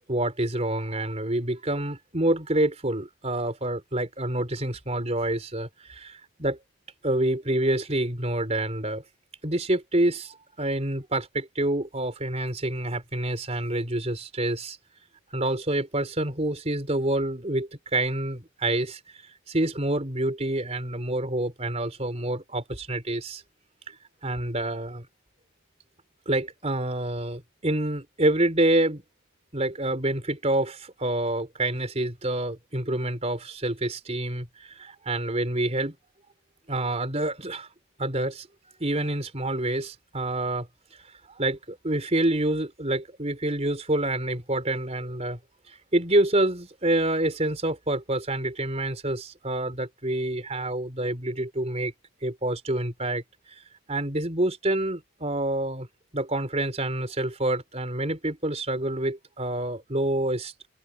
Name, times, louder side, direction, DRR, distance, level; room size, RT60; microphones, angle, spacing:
voice 1, 0.1-6.6 7.0-9.0 9.4-14.8 15.3-23.4 23.9-24.0 24.2-25.1 26.3-29.0 29.5-35.9 36.7-37.7 38.0-38.5 38.8-40.7 41.4-45.4 45.7-51.9 52.2-53.2 53.5-53.6 53.9-55.9 56.1-60.5, right 1 dB, 30° right, 4.2 m, -27 dB
head